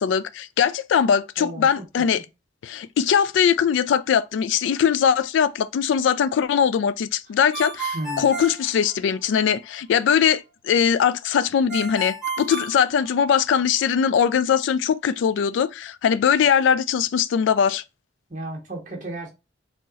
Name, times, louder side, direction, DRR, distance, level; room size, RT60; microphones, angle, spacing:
voice 1, 0.0-2.3 2.6-17.8, left 7 dB, 75° left, 0.3 m, -21 dB
voice 2, 1.4-1.8 7.9-8.3 18.3-19.3, right 2 dB, 40° right, 1.2 m, -33 dB
Ringtone, 7.5-9.4 11.7-13.6, right 3 dB, 5° right, 1.2 m, -32 dB
3.9 x 2.8 x 2.4 m
head